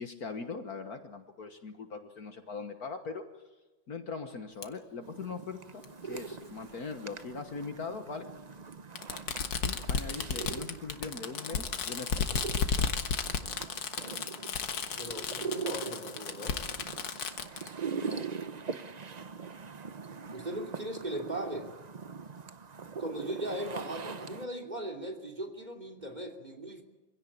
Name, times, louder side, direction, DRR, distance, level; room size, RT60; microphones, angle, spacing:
voice 1, 0.0-3.2 3.9-8.3 9.6-12.4 17.9-18.3, left 4 dB, 55° left, 6 dB, 1.8 m, -41 dB
Fireworks, 4.6-4.7 5.8-5.9 7.2-7.3 9.0-17.7, left 6 dB, 75° left, 2.0 m, -33 dB
sound 1, 5.0-24.5, right 6 dB, 60° right, 0.4 m, -42 dB
voice 2, 15.0-16.6 20.3-21.7 23.0-26.8, right 1 dB, 20° right, 6 dB, 3.0 m, -38 dB
25.5 x 17.0 x 8.7 m, 1.1 s
omnidirectional pair, 2.0 m